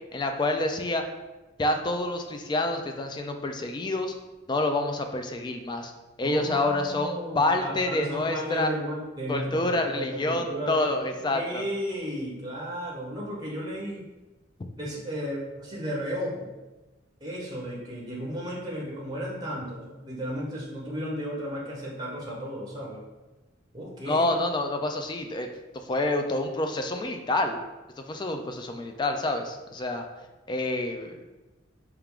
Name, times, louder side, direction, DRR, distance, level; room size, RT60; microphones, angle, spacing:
voice 1, 0.1-1.0 1.6-4.1 4.5-5.9 6.2-8.7 9.3-11.6 24.1-25.5 25.9-27.6 28.1-30.1 30.5-31.2, left 2 dB, 25° left, 5 dB, 0.3 m, -27 dB
voice 2, 6.2-14.0 14.8-16.5 17.2-23.0 23.7-24.3, equal, 20° right, -4 dB, 0.7 m, -34 dB
4.5 x 2.4 x 3.5 m, 1.1 s
head